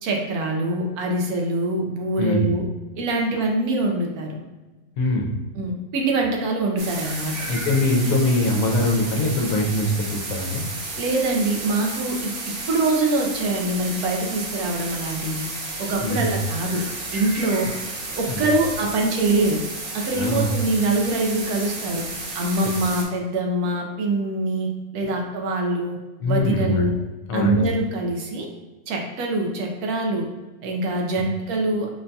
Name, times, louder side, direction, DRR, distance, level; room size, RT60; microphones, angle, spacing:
voice 1, 0.0-2.6 3.0-4.4 5.6-7.5 11.0-12.3 12.7-15.5 15.8-16.8 17.1-17.7 18.2-19.6 19.9-22.0 22.3-26.0 26.3-26.9 27.3-28.5 28.9-30.3 30.6-31.9, right 2 dB, 90° right, 1 dB, 1.1 m, -24 dB
voice 2, 2.2-2.5 5.0-5.3 7.5-10.7 16.0-16.3 18.3-18.4 20.1-20.5 26.2-26.8 27.3-27.7, left 1 dB, 70° left, 0 dB, 1.0 m, -22 dB
sound 1, 6.8-23.0, right 2 dB, 60° right, 0.9 m, -32 dB
5.4 x 2.2 x 2.6 m, 1.2 s
omnidirectional pair, 1.5 m